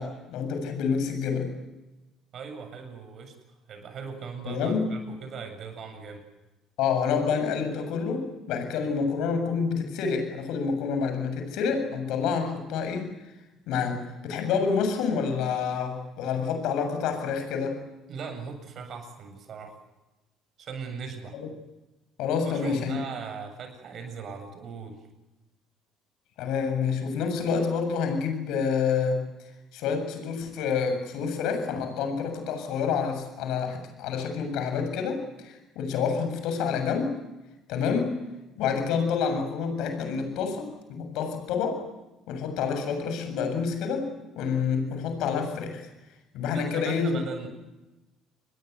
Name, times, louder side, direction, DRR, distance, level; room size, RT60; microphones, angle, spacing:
voice 1, 0.0-1.5 4.5-4.9 6.8-13.1 13.7-17.8 21.3-21.5 22.2-23.0 26.4-29.2 29.7-37.1 37.7-38.2 38.6-41.9 42.3-45.8 46.3-47.2, left 6 dB, 70° left, 7 dB, 7.4 m, -28 dB
voice 2, 2.3-3.3 3.7-6.2 18.1-19.8 20.6-21.4 22.4-25.0 46.4-47.5, right 5 dB, 50° right, 7 dB, 7.6 m, -39 dB
29.5 x 22.0 x 8.2 m, 1.0 s
hypercardioid pair, 60°, 0 cm